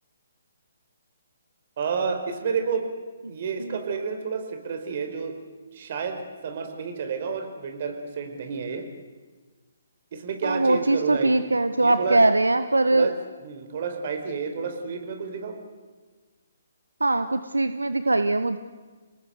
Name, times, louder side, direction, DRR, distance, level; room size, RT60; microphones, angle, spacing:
voice 1, 1.8-2.8 3.3-5.4 5.7-8.9 10.1-11.3 11.8-12.2 12.9-13.1 13.4-15.6, right 5 dB, 45° right, 6 dB, 4.4 m, -30 dB
voice 2, 10.4-13.1 17.0-18.6, right 2 dB, 80° right, 11 dB, 1.1 m, -21 dB
30.0 x 18.5 x 8.0 m, 1.4 s
figure-of-eight pair, 135°, 0 cm